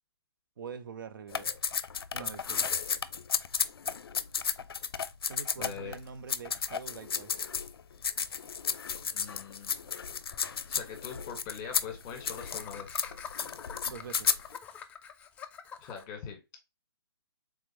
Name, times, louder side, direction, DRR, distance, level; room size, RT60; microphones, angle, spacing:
voice 1, 0.6-1.5 2.1-2.7 5.3-7.4 13.8-14.4, right 6 dB, 55° right, 0.8 m, -44 dB
sound 1, 1.3-6.0 6.3-7.7 8.0-14.6, left 6 dB, 65° left, 0.5 m, -33 dB
voice 2, 5.6-5.9 9.0-9.7 10.7-12.9 15.8-16.4, left 7 dB, 30° left, 1.6 m, -42 dB
Laughter, 10.3-10.4 10.7-10.8 11.0-11.2 12.4-16.0, left 7 dB, 10° left, 0.4 m, -45 dB
4.5 x 3.7 x 2.8 m
figure-of-eight pair, 130°, 13 cm